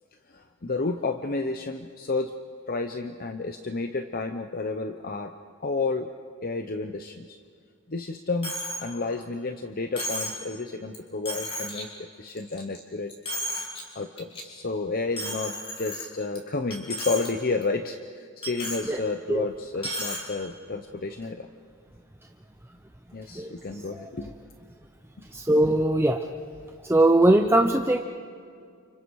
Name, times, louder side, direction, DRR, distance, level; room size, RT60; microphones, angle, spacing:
voice 1, 0.3-2.3 2.7-5.3 5.6-6.1 6.4-7.4 7.9-13.1 13.9-21.5 23.1-24.3, left 3 dB, 40° left, 7 dB, 0.9 m, -31 dB
Coin (dropping), 8.4-8.8 9.2-9.3 10.0-10.4 10.9-11.0 11.3-11.8 12.3-12.8 13.1-13.8 14.2-14.4 15.2-16.4 16.7-17.3 17.6-17.7 18.4-18.8 19.8-20.2, equal, 25° left, 5.2 m, -33 dB
voice 2, 25.3-26.2 26.9-28.0, right 1 dB, 10° right, 4 dB, 0.7 m, -20 dB
30.0 x 30.0 x 4.8 m, 2.3 s
head